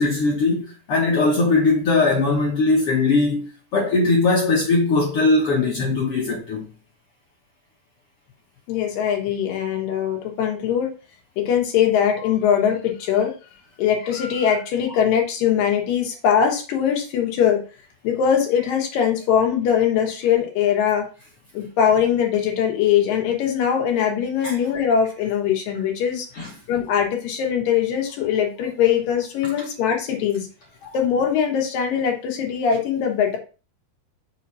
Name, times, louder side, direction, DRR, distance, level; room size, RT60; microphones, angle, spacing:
voice 1, 0.0-6.7 24.4-24.5 26.4-26.5, left 3 dB, 60° left, 1.6 m, -20 dB
voice 2, 8.7-10.9 11.4-13.3 13.8-17.6 18.0-21.1 21.5-26.3 26.7-30.5 30.8-33.4, left 8 dB, 90° left, 3.1 m, -21 dB
6.5 x 2.7 x 5.5 m
omnidirectional pair, 3.8 m